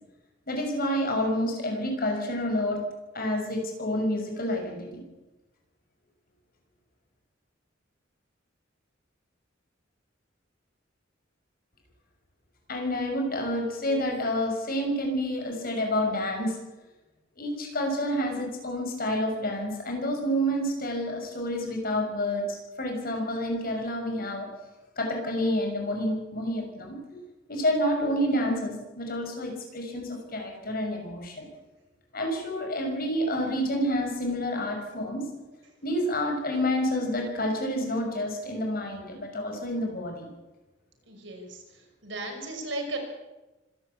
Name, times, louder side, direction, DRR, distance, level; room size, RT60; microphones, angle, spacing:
voice 1, 0.5-2.8 3.1-4.9 12.7-16.6 17.4-24.5 25.0-27.0 27.5-31.5 32.1-35.2 35.8-40.3, equal, 50° left, 2 dB, 6.7 m, -29 dB
voice 2, 41.1-41.6 42.0-43.0, right 2 dB, 70° right, 3 dB, 5.8 m, -35 dB
25.5 x 12.5 x 8.5 m, 1.1 s
head